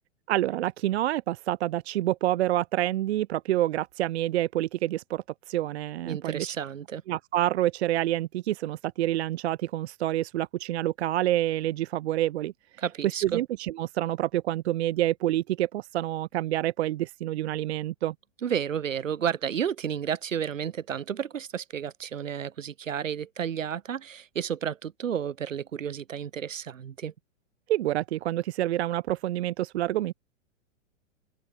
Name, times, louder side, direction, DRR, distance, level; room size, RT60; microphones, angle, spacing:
voice 1, 0.3-6.6 7.1-18.1 27.7-30.1, right 14 dB, 55° right, 0.7 m, -28 dB
voice 2, 6.1-7.0 12.8-13.4 18.4-27.1, right 8 dB, 75° right, 1.7 m, -31 dB
figure-of-eight pair, 110°, 39 cm